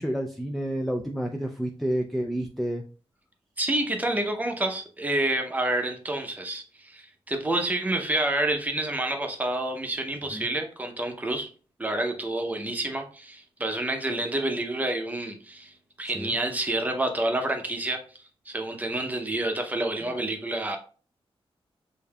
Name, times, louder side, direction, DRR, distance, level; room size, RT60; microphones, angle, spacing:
voice 1, 0.0-2.8 10.3-10.5 16.1-16.3, equal, ahead, 3 dB, 0.3 m, -29 dB
voice 2, 3.6-11.5 11.8-18.0 18.5-20.8, right 1 dB, 15° right, 4 dB, 0.7 m, -28 dB
6.6 x 2.7 x 2.3 m, 0.39 s
wide cardioid pair, 155°, 10 cm